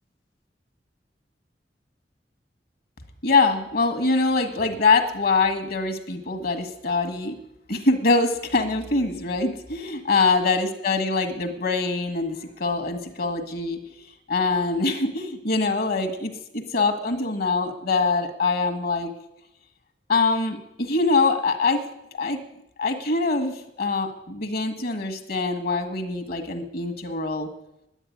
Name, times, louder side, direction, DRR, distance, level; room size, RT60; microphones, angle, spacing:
voice 1, 3.2-7.3 7.7-13.8 14.3-19.1 20.1-22.4 22.8-27.5, left 3 dB, 60° left, 7 dB, 1.6 m, -24 dB
10.0 x 9.9 x 9.5 m, 0.83 s
head